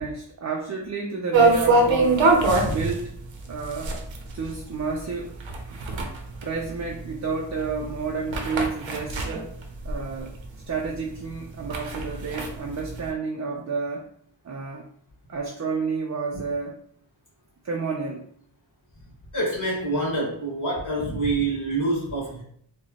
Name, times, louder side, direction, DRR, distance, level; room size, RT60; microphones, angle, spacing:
voice 1, 0.0-2.3 2.7-3.2 3.5-4.0 4.3-5.3 6.4-9.5 9.8-10.3 10.7-14.1 14.4-14.9 15.3-16.8 17.6-18.2, right 4 dB, 40° right, -2 dB, 0.5 m, -30 dB
sound 1, 1.3-10.4 10.8-10.9 11.3-13.1, right 3 dB, 90° right, 0.8 m, -23 dB
voice 2, 19.3-22.4, right 2 dB, 45° left, -5 dB, 1.5 m, -26 dB
4.8 x 2.2 x 2.8 m, 0.63 s
wide cardioid pair, 125°, 45 cm